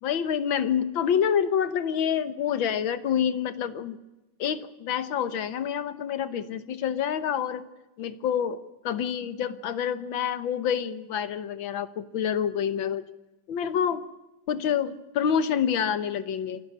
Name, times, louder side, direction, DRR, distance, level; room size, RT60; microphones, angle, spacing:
voice 1, 0.0-4.0 4.4-7.6 8.0-13.0 13.5-14.0 14.5-16.6, left 8 dB, 80° left, 13 dB, 1.9 m, -27 dB
27.5 x 12.0 x 9.6 m, 1.0 s
omnidirectional pair, 2.1 m